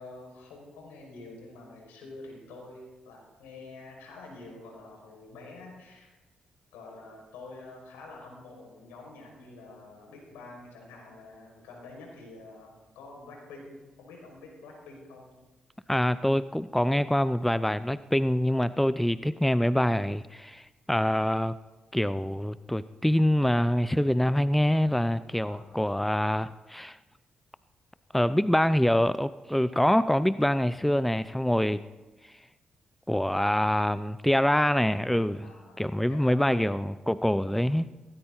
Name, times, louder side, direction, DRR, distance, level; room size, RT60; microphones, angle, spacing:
voice 1, 0.0-6.2 6.7-15.4 25.4-25.8 35.4-36.7, left 2 dB, 80° left, 0 dB, 5.7 m, -47 dB
voice 2, 15.9-20.6 20.9-21.6 21.9-27.0 28.1-31.8 33.1-35.5 35.8-37.9, left 1 dB, 5° left, 15 dB, 0.6 m, -25 dB
18.5 x 18.5 x 4.1 m, 1.2 s
hypercardioid pair, 40°, 3 cm